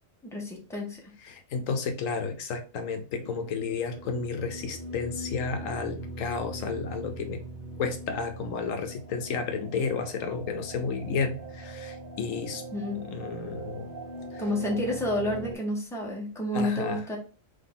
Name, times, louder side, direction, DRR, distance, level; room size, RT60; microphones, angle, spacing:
voice 1, 0.2-1.0 12.7-13.0 14.4-17.2, left 1 dB, ahead, -2 dB, 1.2 m, -30 dB
voice 2, 1.3-7.4 7.8-12.6 13.1-13.9 16.5-17.0, left 5 dB, 75° left, 7 dB, 1.0 m, -32 dB
sound 1, 3.2-15.5, right 1 dB, 45° right, 0.6 m, -41 dB
3.8 x 3.4 x 3.7 m, 0.36 s
omnidirectional pair, 1.4 m